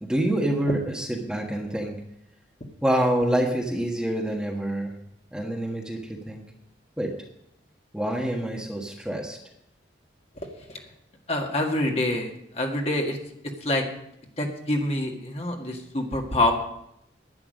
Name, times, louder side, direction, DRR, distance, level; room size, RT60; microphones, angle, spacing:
voice 1, 0.0-1.9 2.8-4.9 5.3-6.0 6.2-6.4 7.0-7.1 7.9-9.4, right 1 dB, 5° right, -1 dB, 1.4 m, -26 dB
voice 2, 11.3-13.2 13.6-13.8 14.4-16.5, left 1 dB, 35° left, 1 dB, 1.7 m, -26 dB
11.0 x 10.0 x 6.4 m, 0.77 s
head